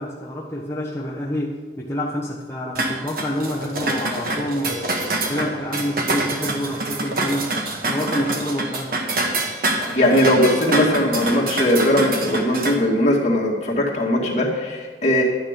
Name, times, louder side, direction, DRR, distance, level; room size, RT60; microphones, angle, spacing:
voice 1, 0.0-5.0 5.3-7.5 7.9-9.0, equal, 15° left, -5 dB, 1.0 m, -27 dB
sound 1, 2.7-12.7, right 2 dB, 55° right, 1.4 m, -26 dB
voice 2, 9.9-15.2, left 1 dB, 40° left, -3 dB, 2.4 m, -19 dB
12.0 x 9.5 x 5.3 m, 1.4 s
head